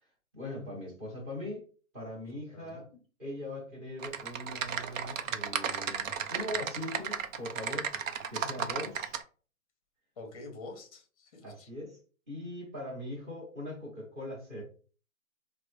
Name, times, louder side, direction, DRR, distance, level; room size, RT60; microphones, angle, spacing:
voice 1, 0.3-1.7 1.9-2.9 3.2-7.9 8.3-9.2 11.4-12.0 12.3-14.6, left 1 dB, 10° right, -4 dB, 0.7 m, -40 dB
voice 2, 2.2-2.8 8.4-8.7 10.2-11.7, left 2 dB, 25° left, 4 dB, 0.6 m, -47 dB
Typing, 4.0-9.2, right 7 dB, 70° right, 0.6 m, -34 dB
3.3 x 2.0 x 3.1 m, 0.39 s
hypercardioid pair, 155°, 41 cm